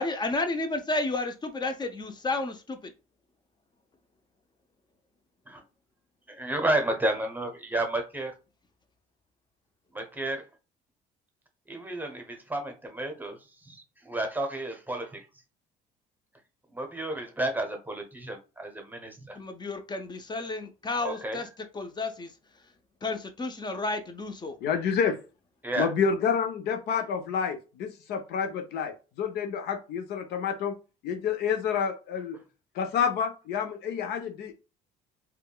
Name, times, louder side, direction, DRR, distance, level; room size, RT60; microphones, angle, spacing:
voice 1, 0.0-2.9 19.3-21.5 21.7-22.3 23.0-24.6, left 2 dB, 25° left, 0.6 m, -31 dB
voice 2, 6.3-8.3 9.9-10.4 11.7-15.3 16.7-19.4 21.0-21.4 25.6-25.9, right 1 dB, 10° right, 0.8 m, -32 dB
voice 3, 24.6-25.2 25.8-30.7 31.0-32.4 32.8-34.5, left 6 dB, 65° left, 0.6 m, -29 dB
3.4 x 2.3 x 2.2 m
supercardioid pair, 80°, 18 cm